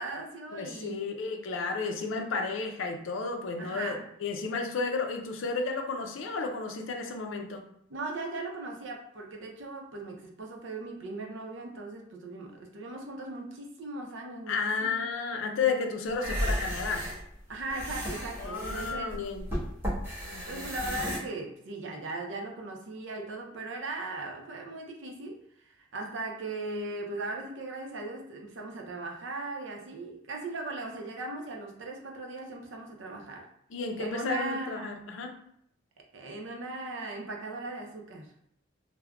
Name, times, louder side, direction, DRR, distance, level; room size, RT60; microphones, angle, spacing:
voice 1, 0.0-1.0 3.6-4.0 7.9-15.0 17.5-19.2 20.2-33.5 34.0-34.9 36.1-38.3, right 2 dB, 75° right, 1 dB, 0.5 m, -38 dB
voice 2, 0.5-7.6 14.5-17.1 18.4-19.5 20.2-20.7 33.7-35.4, left 4 dB, 85° left, 4 dB, 0.5 m, -32 dB
sound 1, 16.1-21.2, equal, 10° right, 1.3 m, -34 dB
3.5 x 2.0 x 2.2 m, 0.71 s
head